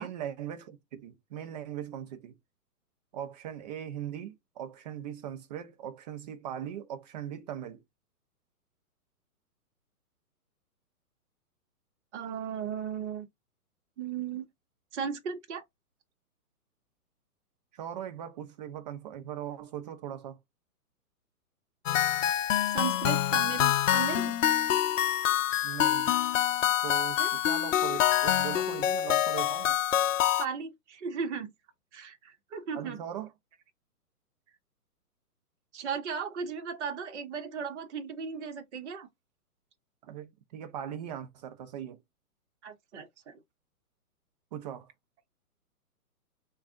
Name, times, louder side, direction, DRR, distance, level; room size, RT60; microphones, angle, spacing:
voice 1, 0.0-2.4 3.1-7.8 17.7-20.4 23.3-23.5 25.6-26.2 26.8-29.8 32.7-33.3 40.0-42.0 44.5-44.9, right 10 dB, 30° right, 0.6 m, -40 dB
voice 2, 12.1-13.3 14.0-14.4 14.9-15.6 22.7-24.3 27.2-27.3 30.4-31.5 31.9-33.0 35.7-39.1 42.6-43.4, right 6 dB, 50° right, 0.9 m, -36 dB
sound 1, 21.9-30.5, left 11 dB, 55° left, 0.5 m, -26 dB
3.5 x 2.3 x 3.6 m
hypercardioid pair, 135°, 46 cm